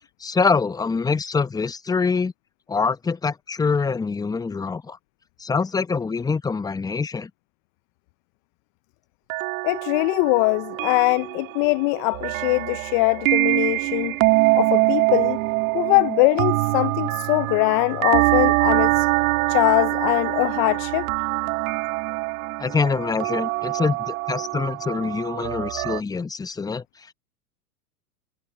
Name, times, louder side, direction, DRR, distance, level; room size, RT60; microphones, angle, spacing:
voice 1, 0.2-2.3 2.7-5.0 5.4-7.3 22.6-26.8, left 5 dB, 10° left, 0.8 m, -24 dB
sound 1, 9.3-26.0, right 22 dB, 60° right, 1.9 m, -24 dB
voice 2, 9.6-14.2 14.5-15.4 15.7-19.1 19.5-21.1, left 28 dB, 35° left, 0.4 m, -22 dB
hypercardioid pair, 110°, 47 cm